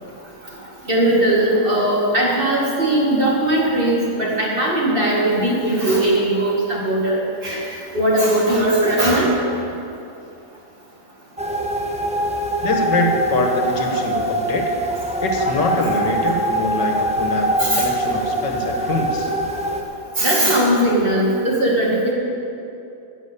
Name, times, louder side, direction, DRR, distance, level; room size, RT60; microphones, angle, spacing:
voice 1, 0.9-7.7 7.9-9.3 17.6-18.2 20.2-22.1, right 1 dB, 30° right, -4 dB, 2.2 m, -19 dB
sound 1, 11.4-19.8, right 1 dB, 5° right, 0.5 m, -23 dB
voice 2, 12.6-14.8 15.2-17.5 17.8-19.3, left 2 dB, 75° left, 2 dB, 1.9 m, -24 dB
11.0 x 8.1 x 8.3 m, 2.7 s
omnidirectional pair, 1.9 m